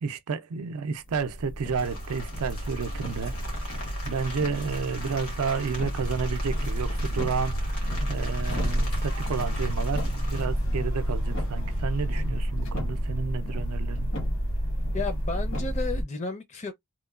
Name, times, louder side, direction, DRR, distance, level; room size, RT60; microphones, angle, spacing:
voice 1, 0.0-3.6 4.0-14.1, right 5 dB, 80° right, 0.4 m, -31 dB
sound 1, 1.1-16.0, equal, 60° left, 1.0 m, -30 dB
Rain, 1.8-10.4, left 1 dB, 80° left, 1.4 m, -41 dB
voice 2, 14.9-16.7, left 4 dB, 30° left, 0.5 m, -33 dB
3.0 x 2.1 x 2.3 m
head